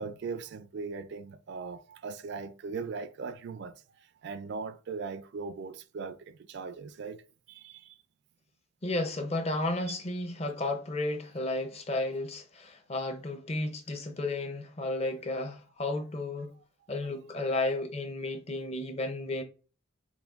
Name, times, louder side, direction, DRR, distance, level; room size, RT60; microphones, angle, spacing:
voice 1, 0.0-3.8 4.2-7.2 7.5-8.0, right 4 dB, 60° right, 0.3 m, -39 dB
voice 2, 8.8-16.5 16.9-19.4, left 2 dB, 30° left, 0.6 m, -33 dB
5.8 x 2.2 x 2.4 m
head